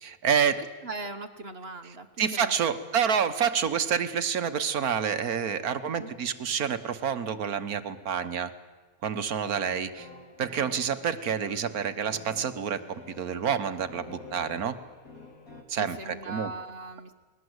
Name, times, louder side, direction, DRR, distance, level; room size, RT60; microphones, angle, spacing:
voice 1, 0.0-0.6 2.2-8.5 9.0-10.1 10.4-14.7 15.7-16.5, right 7 dB, 65° right, 11 dB, 1.5 m, -28 dB
voice 2, 0.6-2.9 6.0-6.1 15.8-17.1, right 2 dB, 40° right, 8 dB, 1.3 m, -40 dB
sound 1, 9.3-15.6, left 2 dB, 60° left, 3.4 m, -48 dB
29.5 x 20.0 x 8.0 m, 1.4 s
omnidirectional pair, 1.7 m